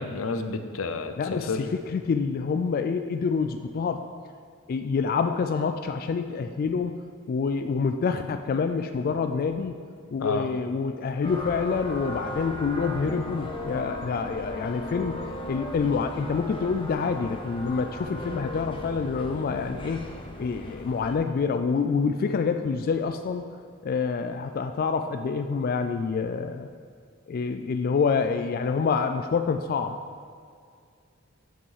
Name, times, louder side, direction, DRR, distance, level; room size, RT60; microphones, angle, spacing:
voice 1, 0.0-1.7 10.2-10.5, left 3 dB, 85° left, 8 dB, 0.6 m, -30 dB
voice 2, 1.2-1.7 1.9-4.0 4.7-6.9 7.3-9.8 10.1-15.2 15.5-20.0 20.4-23.5 23.8-26.7 27.3-30.0, left 5 dB, 45° left, 7 dB, 0.3 m, -27 dB
sound 1, 11.2-21.1, left 1 dB, 25° left, 0.7 m, -37 dB
7.9 x 5.5 x 4.9 m, 2.2 s
head